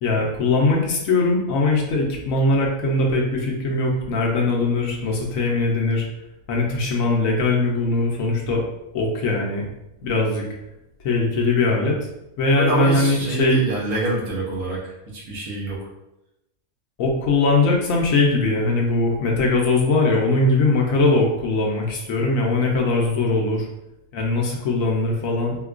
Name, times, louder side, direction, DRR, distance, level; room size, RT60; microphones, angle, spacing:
voice 1, 0.0-6.0 6.5-8.6 8.9-9.7 10.0-10.5 11.0-12.0 12.4-13.6 17.0-23.7 24.1-25.6, left 2 dB, 70° left, -1 dB, 1.0 m, -20 dB
voice 2, 12.6-15.9, right 2 dB, 80° right, -4 dB, 1.4 m, -26 dB
4.4 x 2.2 x 2.4 m, 0.89 s
omnidirectional pair, 1.6 m